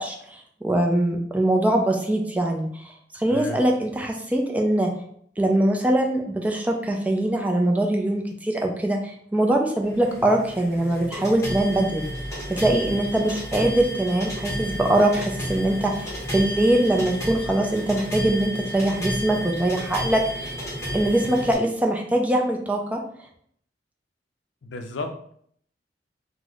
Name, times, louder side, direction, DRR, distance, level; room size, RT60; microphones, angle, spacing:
voice 1, 0.0-4.9 5.4-12.1 12.5-20.6 20.9-23.0, right 1 dB, 10° right, 1 dB, 0.3 m, -22 dB
sound 1, 9.8-21.5, equal, 15° left, 1.1 m, -32 dB
voice 2, 24.6-25.3, left 2 dB, 90° left, 5 dB, 0.4 m, -33 dB
3.0 x 2.0 x 3.7 m, 0.64 s
head